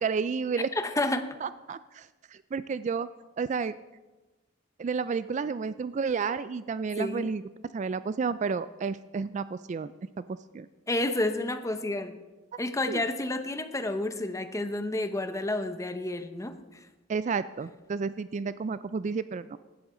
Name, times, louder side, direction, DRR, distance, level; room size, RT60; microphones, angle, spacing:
voice 1, 0.0-0.7 1.4-3.1 3.4-3.7 4.8-7.4 7.7-9.9 10.3-10.7 12.9-13.0 17.1-19.6, right 5 dB, 40° right, 15 dB, 0.3 m, -31 dB
voice 2, 0.8-1.3 7.0-7.3 10.9-12.2 12.6-16.6, left 2 dB, 15° left, 9 dB, 0.8 m, -30 dB
16.0 x 12.0 x 3.8 m, 1.1 s
head